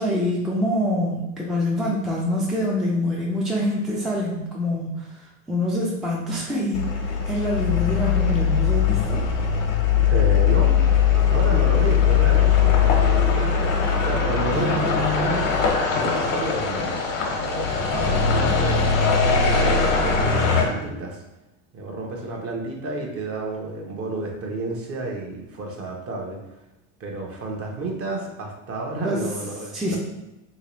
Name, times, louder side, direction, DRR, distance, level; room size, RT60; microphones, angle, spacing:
voice 1, 0.0-9.2 14.5-15.4 29.0-29.2 29.7-30.0, left 1 dB, ahead, -3 dB, 0.4 m, -25 dB
sound 1, 6.7-20.6, left 6 dB, 75° left, 1.0 m, -20 dB
voice 2, 9.9-10.8 11.1-15.4 16.0-17.1 17.4-21.2 21.7-26.4 27.0-30.0, right 2 dB, 35° right, 1 dB, 0.8 m, -31 dB
3.1 x 2.9 x 3.0 m, 0.97 s
hypercardioid pair, 95°, 39 cm